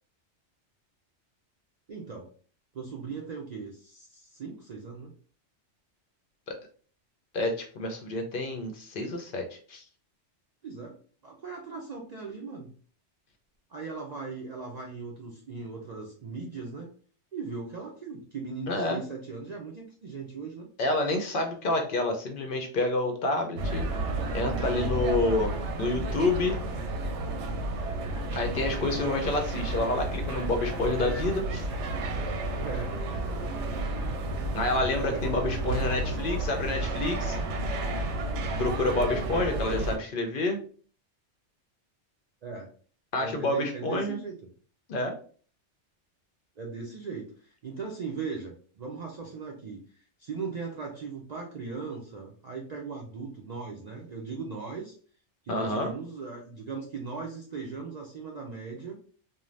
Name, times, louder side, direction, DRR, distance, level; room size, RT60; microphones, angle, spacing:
voice 1, 1.9-2.3 2.7-5.2 10.6-11.0 11.2-12.7 13.7-16.9 17.3-20.7 32.6-33.0 35.0-35.3 42.4-42.7 43.2-44.3 46.6-54.9 55.4-59.0, right 4 dB, 60° right, 0 dB, 0.4 m, -38 dB
voice 2, 7.3-9.8 18.7-19.0 20.8-23.8 24.1-25.5 25.8-26.6 28.3-31.7 34.5-37.4 38.6-40.6 43.1-44.2 44.9-45.1 55.5-55.9, left 2 dB, 60° left, 4 dB, 0.6 m, -28 dB
sound 1, 23.6-40.0, right 2 dB, 80° right, 0.9 m, -31 dB
2.5 x 2.1 x 3.1 m, 0.43 s
omnidirectional pair, 1.2 m